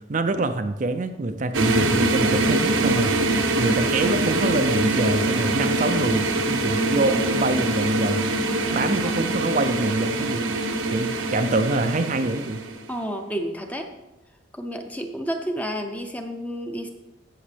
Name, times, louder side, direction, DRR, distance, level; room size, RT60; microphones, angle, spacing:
voice 1, 0.0-3.2 3.6-8.3 8.7-10.5 10.9-12.6, right 2 dB, 40° right, 7 dB, 0.5 m, -25 dB
sound 1, 1.5-12.9, right 2 dB, 85° right, 1.0 m, -24 dB
voice 2, 12.9-13.9 14.5-16.9, equal, 5° left, 4 dB, 0.7 m, -30 dB
15.5 x 6.4 x 3.4 m, 1.0 s
head